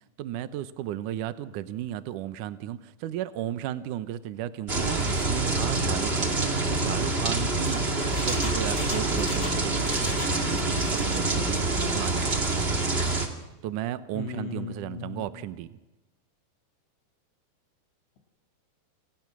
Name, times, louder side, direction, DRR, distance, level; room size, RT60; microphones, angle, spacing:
voice 1, 0.2-6.4 6.7-7.8 8.1-10.0 10.5-12.8 13.6-15.7, right 12 dB, 75° right, 13 dB, 1.9 m, -34 dB
sound 1, 4.7-13.3, right 2 dB, 30° right, 1.2 m, -26 dB
Engine, 7.4-10.4 10.6-11.3 11.7-12.2 12.6-12.7, left 2 dB, 20° left, 3.4 m, -39 dB
voice 2, 14.1-15.3, left 6 dB, 80° left, 3 dB, 4.4 m, -37 dB
28.5 x 26.5 x 6.3 m, 1.1 s
omnidirectional pair, 5.0 m